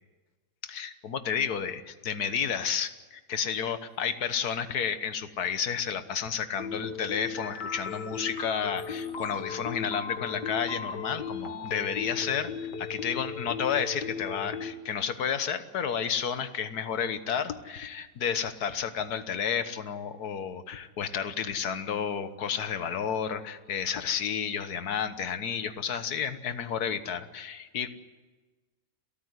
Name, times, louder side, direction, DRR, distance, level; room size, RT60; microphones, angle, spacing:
voice 1, 0.6-12.5 12.8-27.9, left 7 dB, 65° left, 11 dB, 1.7 m, -31 dB
sound 1, 6.6-14.7, left 5 dB, 80° left, 2.2 m, -36 dB
29.0 x 14.0 x 9.7 m, 1.3 s
omnidirectional pair, 1.8 m